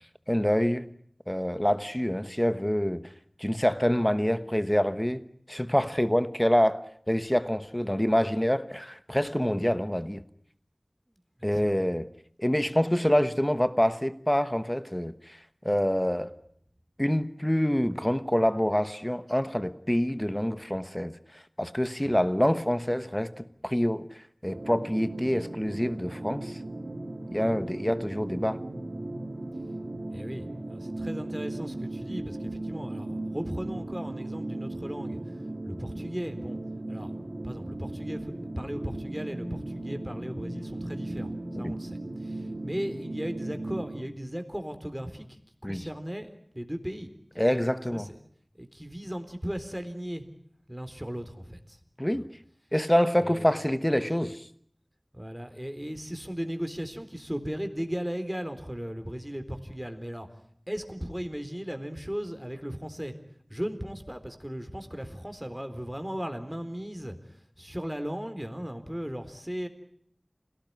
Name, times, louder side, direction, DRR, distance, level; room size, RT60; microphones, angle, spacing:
voice 1, 0.3-0.9 1.3-3.1 3.4-10.2 11.4-12.1 12.4-15.4 15.6-16.3 17.0-26.6 27.3-28.6 41.6-41.8 45.6-45.9 47.4-48.1 52.0-52.3 52.7-54.5, equal, 15° left, 1.2 m, -26 dB
voice 2, 11.4-11.8 30.1-35.2 35.6-36.6 36.9-37.1 37.4-47.1 47.9-48.2 48.6-50.3 50.7-51.8 53.2-53.5 55.1-60.3 60.7-63.1 63.5-69.7, equal, 10° right, 3.9 m, -37 dB
sound 1, 24.5-44.0, right 2 dB, 80° right, 2.1 m, -37 dB
27.5 x 18.0 x 9.5 m
wide cardioid pair, 40°, 0 cm